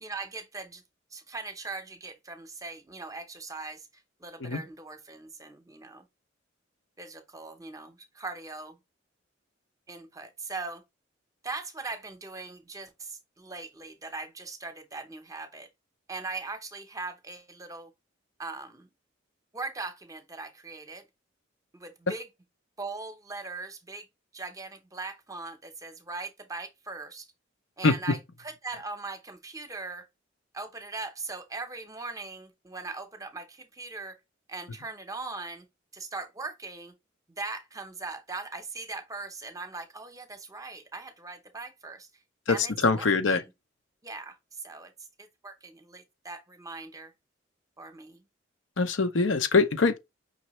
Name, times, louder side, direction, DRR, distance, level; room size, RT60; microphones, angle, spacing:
voice 1, 0.0-0.8 1.1-6.0 7.0-8.8 9.9-10.8 11.4-15.7 16.1-17.9 18.4-18.9 19.5-21.1 21.7-22.3 22.8-24.1 24.3-27.3 27.8-30.1 30.5-34.2 34.5-35.7 35.9-36.9 37.3-42.1 42.5-43.4 44.0-44.9 45.2-47.1 47.8-48.2, right 3 dB, 20° right, 0.8 m, -40 dB
voice 2, 42.5-43.4 48.8-50.0, left 4 dB, 80° left, 0.8 m, -23 dB
5.4 x 3.2 x 3.1 m
head